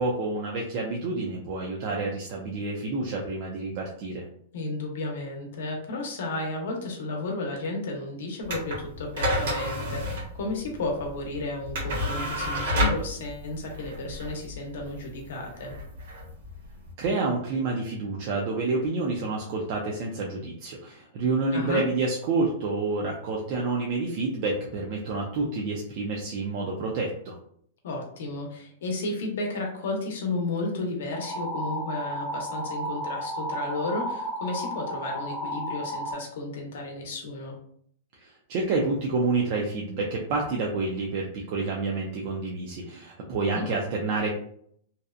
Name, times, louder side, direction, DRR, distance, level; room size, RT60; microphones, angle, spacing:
voice 1, 0.0-4.2 17.0-27.3 38.2-44.3, right 3 dB, 40° right, -1 dB, 0.4 m, -28 dB
voice 2, 4.5-15.8 21.5-21.8 27.8-37.5 43.5-43.7, left 2 dB, 70° left, 0 dB, 0.7 m, -33 dB
sound 1, 8.4-16.9, equal, 65° right, 1.1 m, -30 dB
sound 2, 31.1-36.1, equal, 20° left, 0.4 m, -33 dB
2.6 x 2.1 x 2.4 m, 0.63 s
supercardioid pair, 170°, 0 cm